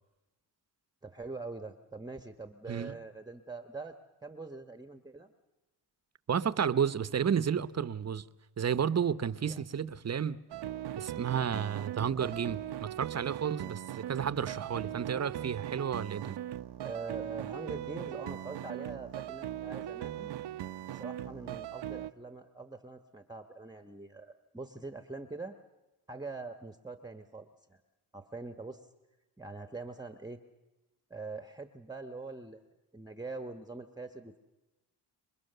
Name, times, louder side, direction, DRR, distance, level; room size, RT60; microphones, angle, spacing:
voice 1, 1.0-5.3 9.4-9.6 16.8-20.3 20.9-25.6 26.1-27.8 28.1-28.9 29.4-30.4 31.1-32.6 32.9-34.4, right 3 dB, 10° right, 1.1 m, -43 dB
voice 2, 6.3-8.2 8.6-10.4 11.0-16.4, right 7 dB, 35° right, 0.9 m, -32 dB
sound 1, 10.5-22.1, right 12 dB, 70° right, 0.8 m, -39 dB
27.5 x 22.5 x 6.8 m
cardioid pair, 90°, 43 cm